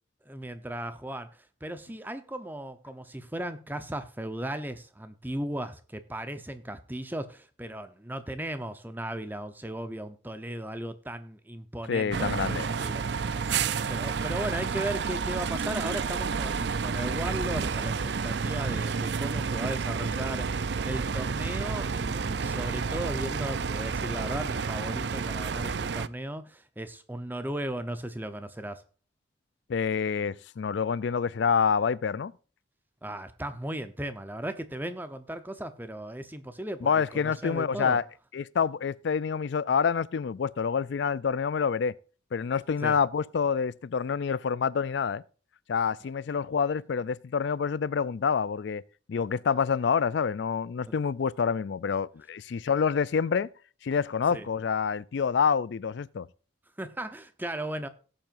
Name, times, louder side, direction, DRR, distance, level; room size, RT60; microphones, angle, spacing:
voice 1, 0.3-13.6 13.9-28.8 33.0-38.0 42.8-43.0 54.3-54.5 56.8-57.9, right 1 dB, 10° right, 0.8 m, -36 dB
voice 2, 11.9-12.7 29.7-32.3 36.8-38.0 38.3-41.9 42.3-45.2 45.7-48.8 49.1-53.5 53.8-56.3, left 6 dB, 60° left, 0.4 m, -27 dB
sound 1, 12.1-26.1, right 5 dB, 60° right, 0.5 m, -30 dB
18.0 x 7.6 x 2.6 m
head